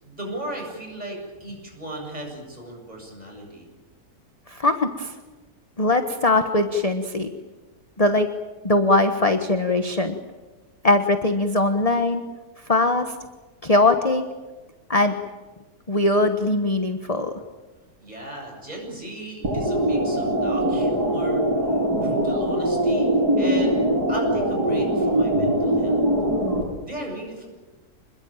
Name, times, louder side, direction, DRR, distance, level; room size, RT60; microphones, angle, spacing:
voice 1, 0.0-3.7 18.0-23.8 24.1-26.0 26.8-27.5, right 1 dB, 25° right, 0 dB, 8.2 m, -36 dB
voice 2, 4.5-5.1 5.8-7.3 8.0-8.3 8.6-10.2 10.8-12.2 12.7-13.1 13.6-14.2 14.9-15.2 15.9-17.3, left 2 dB, 25° left, 6 dB, 1.3 m, -21 dB
sound 1, 19.4-26.6, right 1 dB, 90° right, 8.4 m, -22 dB
27.0 x 21.5 x 9.0 m, 1.2 s
omnidirectional pair, 1.6 m